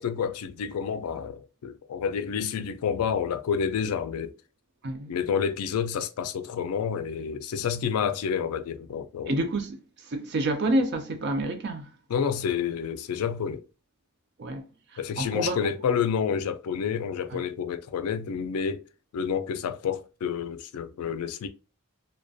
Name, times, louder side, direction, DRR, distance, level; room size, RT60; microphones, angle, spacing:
voice 1, 0.0-4.3 5.1-9.4 12.1-13.6 15.0-18.9 19.1-21.5, left 7 dB, 80° left, 0.3 m, -29 dB
voice 2, 9.3-11.9 14.4-14.6 14.9-15.6 17.3-17.4, right 1 dB, 50° right, 0.5 m, -28 dB
2.4 x 2.1 x 2.5 m
head